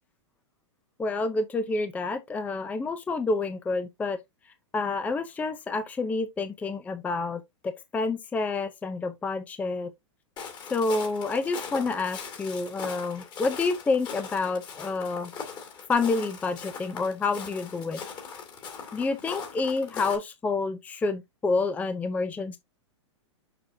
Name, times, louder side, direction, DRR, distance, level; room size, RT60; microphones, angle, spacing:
voice 1, 1.0-4.2 4.7-9.9 10.7-15.3 15.9-18.0 18.9-22.6, left 3 dB, 10° left, 0.5 m, -28 dB
Walk footsteps, 10.4-20.2, left 6 dB, 30° left, 2.3 m, -40 dB
6.6 x 5.8 x 2.6 m
hypercardioid pair, 140°, 16 cm